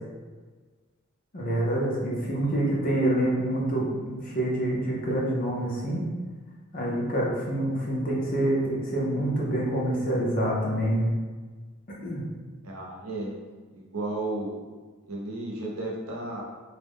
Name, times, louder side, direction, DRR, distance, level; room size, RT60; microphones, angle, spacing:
voice 1, 1.3-6.0 6.7-11.1 12.0-12.2, right 1 dB, 40° left, -4 dB, 0.6 m, -26 dB
voice 2, 2.2-2.5 12.6-13.4 13.7-14.6 15.1-16.4, right 2 dB, 85° right, -3 dB, 0.7 m, -34 dB
2.3 x 2.1 x 3.4 m, 1.4 s
head